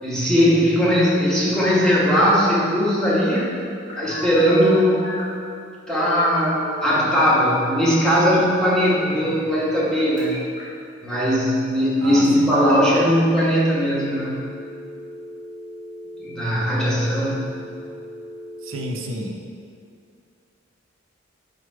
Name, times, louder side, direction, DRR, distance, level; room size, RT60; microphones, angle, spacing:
voice 1, 0.0-3.5 4.0-5.2 5.9-10.4 11.0-14.4 16.2-17.6, equal, 5° left, -8 dB, 1.1 m, -19 dB
Telephone, 3.3-5.4 5.9-6.9 8.9-9.9 10.2-10.6 12.3-13.0 13.4-13.5 13.8-18.9, left 1 dB, 45° left, 1.5 m, -37 dB
voice 2, 12.0-12.5 18.6-19.4, right 1 dB, 85° right, 2 dB, 0.6 m, -30 dB
4.9 x 4.3 x 4.7 m, 2.3 s
head